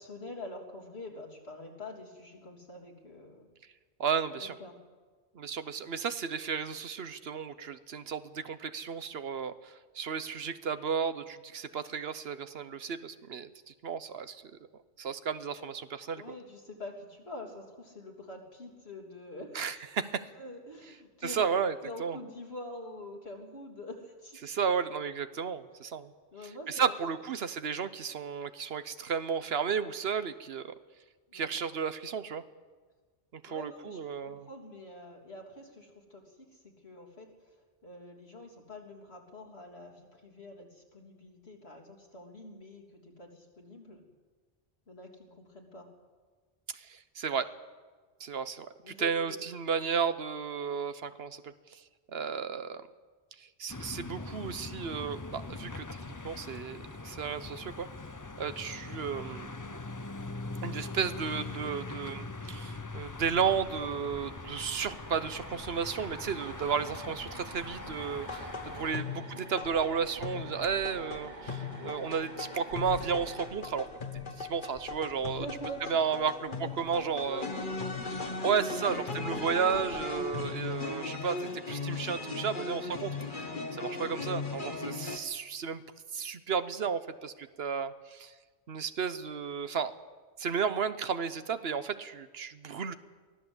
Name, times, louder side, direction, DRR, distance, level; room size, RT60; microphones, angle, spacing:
voice 1, 0.0-3.5 4.4-4.7 16.2-19.6 20.4-21.5 21.8-24.4 26.3-26.9 31.3-31.5 33.5-37.6 37.8-44.0 44.9-45.9 48.8-49.7 59.6-59.8 68.9-69.1 69.4-69.5 69.8-69.9 71.8-72.0 75.1-78.5 80.6-80.8 84.1-84.3 92.8-93.0, left 1 dB, 75° left, 1 dB, 3.6 m, -46 dB
voice 2, 4.0-4.6 5.3-14.4 15.0-16.2 19.5-20.3 21.2-22.2 24.4-26.1 26.7-30.7 31.3-32.4 33.3-34.5 46.7-47.5 48.2-51.8 52.1-52.8 53.4-55.9 56.2-57.9 58.4-59.5 60.6-73.9 74.4-75.5 75.9-76.3 76.6-77.4 78.4-85.8 86.1-88.3 88.7-89.9 90.4-92.9, right 6 dB, 70° right, 12 dB, 1.1 m, -33 dB
sound 1, 53.7-68.9, left 3 dB, 20° left, 0.7 m, -42 dB
sound 2, 62.7-73.5, right 3 dB, 45° right, 1.4 m, -49 dB
sound 3, 68.3-85.2, left 4 dB, 50° left, 1.7 m, -38 dB
23.5 x 15.5 x 8.0 m, 1.4 s
omnidirectional pair, 1.1 m